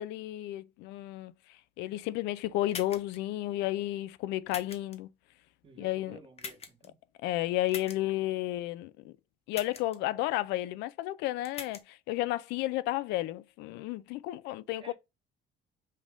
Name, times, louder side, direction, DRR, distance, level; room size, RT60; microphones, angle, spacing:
voice 1, 0.0-1.3 1.8-5.1 5.8-6.2 7.2-9.1 9.5-14.9, left 15 dB, 90° left, 0.4 m, -32 dB
sound 1, 2.7-3.2 4.5-5.0 6.4-6.9 7.7-8.0 9.5-10.0 11.4-11.8, left 6 dB, 40° left, 0.9 m, -42 dB
voice 2, 5.6-7.0 14.8-14.9, right 4 dB, 30° right, 1.4 m, -52 dB
5.3 x 2.6 x 3.5 m
cardioid pair, 110°, 17 cm